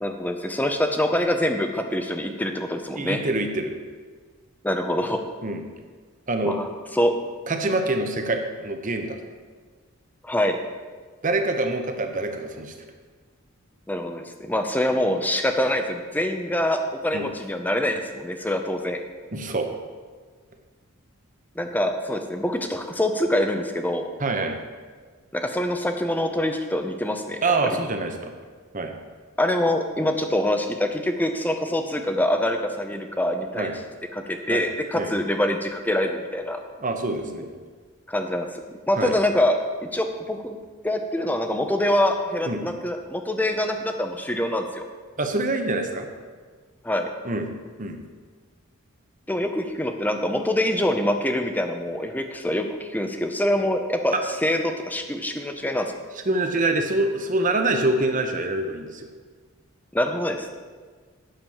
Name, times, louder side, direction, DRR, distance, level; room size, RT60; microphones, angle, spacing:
voice 1, 0.0-3.2 4.6-5.2 6.4-6.7 6.9-7.1 10.2-10.6 13.9-19.0 21.6-24.1 25.3-27.4 29.4-33.7 34.1-36.6 38.1-39.5 39.9-40.6 40.8-44.8 46.8-47.1 49.3-55.9 59.9-60.5, left 1 dB, 10° left, 5 dB, 0.7 m, -25 dB
voice 2, 2.9-3.7 5.4-5.6 6.3-6.6 7.5-9.2 11.2-12.7 17.1-17.3 19.3-19.7 24.2-24.6 27.4-28.3 28.7-28.9 33.6-33.8 34.5-34.6 34.9-35.1 36.8-37.5 39.0-39.2 42.5-42.6 45.2-46.1 47.2-47.5 47.8-48.0 54.1-54.2 56.3-59.1, right 2 dB, 35° right, 5 dB, 0.9 m, -25 dB
9.0 x 6.1 x 7.2 m, 1.5 s
head